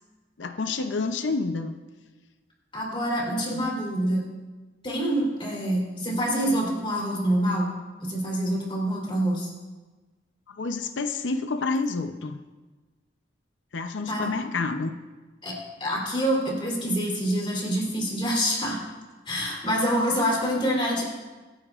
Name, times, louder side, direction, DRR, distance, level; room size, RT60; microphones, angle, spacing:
voice 1, 0.4-1.8 3.5-3.6 10.5-12.4 13.7-14.9, left 3 dB, 80° left, 7 dB, 0.7 m, -29 dB
voice 2, 2.7-4.2 4.8-7.7 8.0-9.5 14.1-14.3 15.4-15.6 15.8-18.8 19.3-21.1, equal, 30° left, -3 dB, 3.6 m, -26 dB
25.5 x 10.0 x 2.5 m, 1.3 s
head